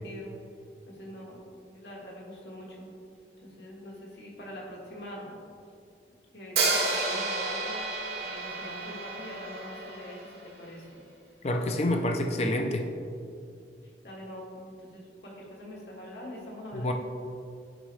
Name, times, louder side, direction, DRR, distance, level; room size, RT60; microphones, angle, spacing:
voice 1, 0.0-0.3 0.8-1.4 1.7-2.9 3.4-5.4 6.3-7.8 8.2-11.1 14.0-16.9, equal, 70° left, -3 dB, 1.5 m, -43 dB
Hi-hat, 6.6-10.5, right 3 dB, 60° right, 1.3 m, -31 dB
voice 2, 11.4-12.9 16.7-16.9, left 1 dB, 35° left, 4 dB, 0.4 m, -27 dB
10.0 x 4.2 x 3.2 m, 2.4 s
head